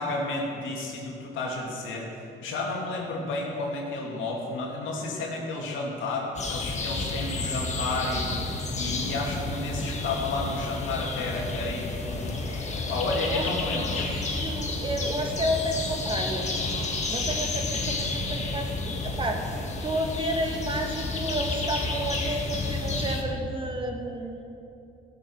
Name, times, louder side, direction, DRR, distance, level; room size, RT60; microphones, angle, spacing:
voice 1, 0.0-12.4 12.8-14.1, left 2 dB, 85° left, -1 dB, 2.3 m, -32 dB
sound 1, 6.4-23.2, left 2 dB, 35° left, 1.7 m, -31 dB
voice 2, 13.2-16.5 17.1-19.4 19.8-24.4, right 1 dB, 25° right, 2 dB, 1.7 m, -31 dB
15.5 x 6.9 x 6.0 m, 2.7 s
cardioid pair, 90°, 20 cm